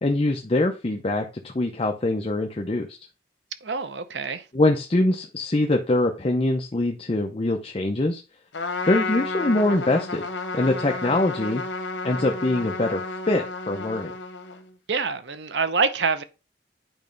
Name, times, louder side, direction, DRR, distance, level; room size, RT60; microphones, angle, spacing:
voice 1, 0.0-2.9 4.5-8.2 8.9-10.3 10.5-11.6 12.0-13.0 13.3-14.1, left 2 dB, 35° left, 0.7 m, -23 dB
voice 2, 3.6-4.4 14.9-16.2, right 4 dB, 70° right, 0.8 m, -26 dB
Trumpet, 8.5-14.7, left 3 dB, 85° left, 1.0 m, -32 dB
9.0 x 3.1 x 5.2 m
head